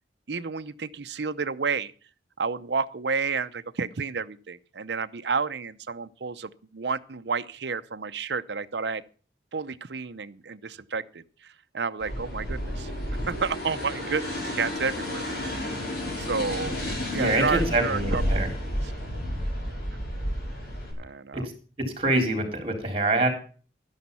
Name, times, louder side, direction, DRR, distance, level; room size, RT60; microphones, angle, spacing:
voice 1, 0.3-1.9 2.4-9.0 9.5-11.2 11.7-12.9 13.2-15.2 16.2-16.8 17.1-18.4 18.8-18.9 21.0-21.4, right 5 dB, 65° right, 0.7 m, -30 dB
sound 1, 12.0-20.9, equal, 60° left, 5.3 m, -31 dB
voice 2, 17.1-18.5 21.3-21.4 22.0-23.3, right 2 dB, 35° right, 4.0 m, -25 dB
12.5 x 10.5 x 5.5 m
head